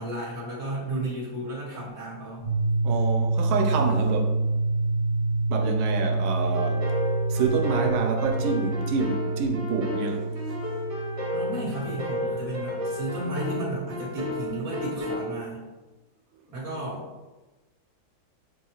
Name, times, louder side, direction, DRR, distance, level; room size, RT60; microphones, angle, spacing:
voice 1, 0.0-2.4 11.3-15.6 16.5-17.0, right 1 dB, 20° right, 1.2 m, -33 dB
sound 1, 2.4-14.3, right 2 dB, 75° left, 2.4 m, -28 dB
voice 2, 2.8-4.3 5.5-6.8 7.3-10.2, right 5 dB, 90° right, 1.4 m, -27 dB
sound 2, 6.5-15.3, left 1 dB, 60° right, 1.5 m, -32 dB
6.5 x 2.3 x 2.9 m
omnidirectional pair, 2.2 m